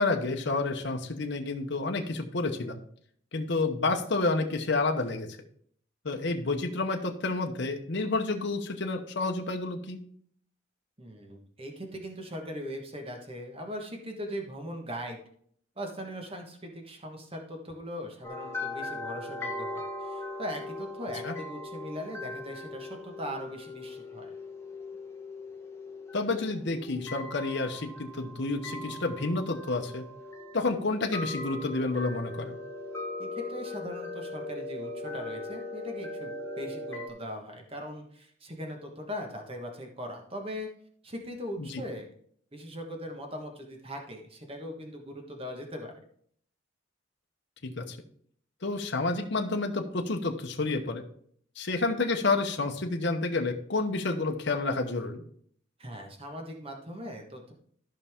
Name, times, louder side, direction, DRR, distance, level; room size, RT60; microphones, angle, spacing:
voice 1, 0.0-2.8 3.3-5.4 6.0-10.0 21.2-21.3 26.1-30.1 30.5-32.6 41.6-41.8 47.6-48.0 48.6-51.0 51.6-55.2, left 3 dB, 60° left, 3 dB, 1.0 m, -29 dB
voice 2, 11.0-15.2 15.8-24.3 33.2-40.7 41.0-42.0 42.5-45.9 55.8-57.5, equal, 30° right, 3 dB, 1.4 m, -40 dB
sound 1, 18.2-37.1, left 2 dB, 15° left, 1.2 m, -39 dB
13.5 x 5.6 x 3.6 m, 0.62 s
head